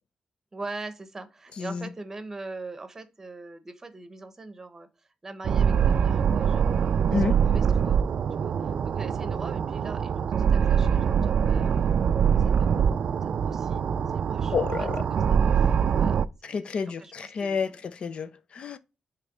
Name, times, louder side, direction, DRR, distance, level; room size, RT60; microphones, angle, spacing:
voice 1, 0.5-6.7 7.1-8.0 8.4-11.8 12.4-12.9 13.2-17.8, right 2 dB, 20° right, 0.9 m, -43 dB
sound 1, 5.4-16.3, right 7 dB, 55° right, 0.4 m, -24 dB
voice 2, 14.5-15.0 16.4-18.8, left 5 dB, 50° left, 0.6 m, -29 dB
6.6 x 3.2 x 5.1 m
wide cardioid pair, 170°, 2 cm